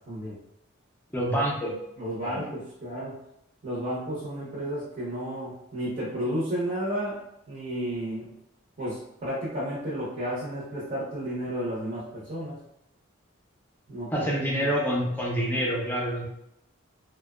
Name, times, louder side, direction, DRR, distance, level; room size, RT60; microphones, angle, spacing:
voice 1, 0.1-0.4 2.0-3.2 3.6-7.2 7.5-8.3 8.8-12.6 13.9-14.7, equal, 40° right, -8 dB, 0.7 m, -32 dB
voice 2, 1.1-1.7 2.2-2.5 14.1-16.3, equal, 10° left, -3 dB, 0.5 m, -27 dB
2.6 x 2.1 x 2.3 m, 0.82 s
head